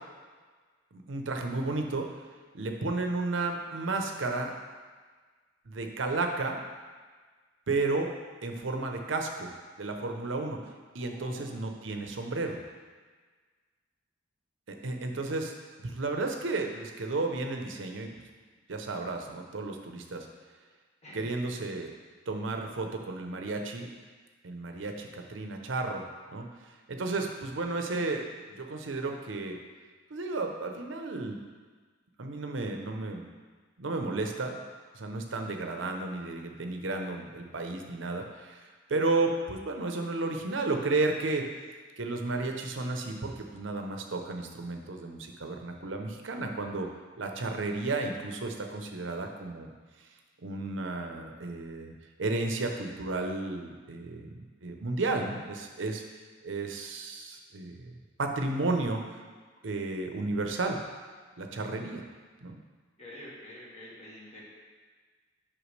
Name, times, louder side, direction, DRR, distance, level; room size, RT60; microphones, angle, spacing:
voice 1, 0.9-2.1 2.5-4.5 5.7-6.6 7.7-8.1 8.4-9.5 9.8-10.6 10.9-12.6 14.7-15.5 15.8-18.1 18.7-20.3 21.1-21.9 22.3-23.9 24.4-26.1 26.3-26.5 26.9-29.6 30.1-31.4 32.2-33.2 33.8-34.6 34.9-41.5 42.0-46.9 47.2-49.7 50.4-51.9 52.2-56.0 56.4-57.9 58.2-59.0 59.6-60.8 61.4-62.0 62.4-62.6, right 3 dB, 80° right, 3 dB, 0.7 m, -33 dB
voice 2, 11.0-11.6 21.0-21.3 63.0-64.4, equal, 35° left, -4 dB, 1.6 m, -47 dB
8.1 x 5.7 x 3.2 m, 1.5 s
head